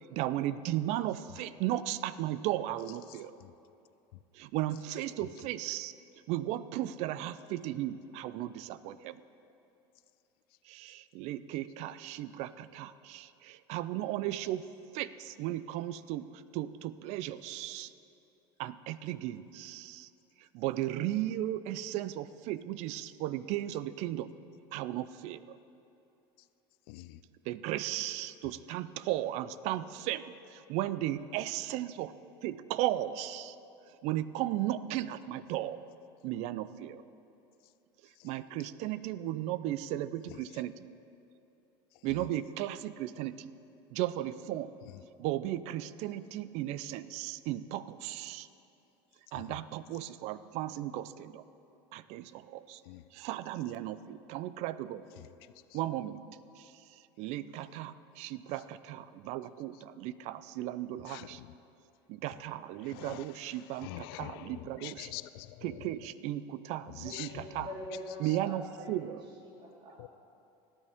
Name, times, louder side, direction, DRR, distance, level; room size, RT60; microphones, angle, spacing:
voice 1, 0.1-3.4 4.3-5.9 6.3-9.2 10.7-14.6 14.9-17.9 18.6-20.1 20.4-24.3 24.7-25.6 27.5-32.1 32.4-33.6 34.0-35.8 36.2-37.0 38.2-40.9 42.0-43.5 43.9-44.7 45.2-48.5 49.3-51.4 51.9-52.8 53.1-55.0 55.7-56.2 56.6-61.4 62.1-65.1 65.6-67.7 68.2-69.2, right 13 dB, 60° right, 0.5 m, -36 dB
voice 2, 26.9-27.2 52.9-53.0 61.1-61.3 62.9-63.2 63.8-65.7 67.1-67.3 67.6-67.7 70.0-70.1, left 17 dB, 75° left, 0.4 m, -44 dB
voice 3, 67.0-70.0, left 1 dB, 40° right, 3.2 m, -45 dB
18.0 x 9.9 x 3.6 m
supercardioid pair, 100°, 13 cm